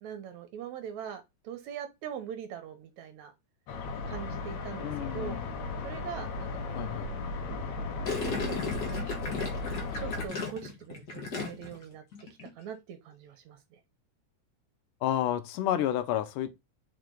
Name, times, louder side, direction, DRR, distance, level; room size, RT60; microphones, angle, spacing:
voice 1, 0.0-3.3 4.0-5.4 5.8-6.9 8.2-12.0 12.4-13.8, right 8 dB, 70° right, 2.1 m, -42 dB
sound 1, 3.7-10.3, left 3 dB, 65° left, 2.3 m, -36 dB
voice 2, 4.8-5.4 6.7-7.1 15.0-16.5, left 11 dB, 85° left, 2.4 m, -30 dB
Gurgling, 8.0-11.8 12.1-12.5, left 4 dB, 40° left, 1.7 m, -35 dB
5.1 x 4.9 x 3.8 m
omnidirectional pair, 3.7 m